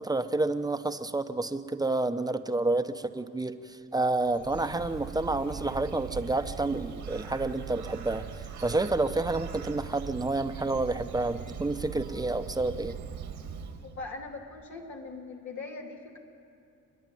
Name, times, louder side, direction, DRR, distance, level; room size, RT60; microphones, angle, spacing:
voice 1, 0.0-8.3 8.6-13.0, right 2 dB, 15° right, 9 dB, 0.9 m, -29 dB
Bird, 4.1-14.1, right 7 dB, 75° right, 1.8 m, -41 dB
voice 2, 13.8-16.2, left 3 dB, 70° left, 0 dB, 2.5 m, -41 dB
29.5 x 10.5 x 9.2 m, 2.6 s
cardioid pair, 90°, 30 cm